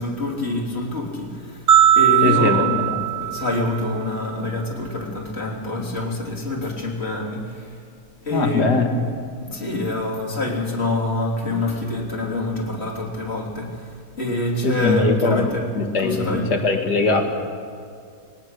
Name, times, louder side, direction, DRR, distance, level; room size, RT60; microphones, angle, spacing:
voice 1, 0.0-7.9 8.2-8.7 9.4-16.6, left 2 dB, 40° left, -1 dB, 3.5 m, -26 dB
sound 1, 1.7-4.0, right 11 dB, 55° right, 1.5 m, -18 dB
voice 2, 2.2-3.0 8.3-8.9 14.6-15.5 15.8-17.3, left 3 dB, 80° left, 4 dB, 2.4 m, -21 dB
21.5 x 18.5 x 6.5 m, 2.3 s
omnidirectional pair, 1.7 m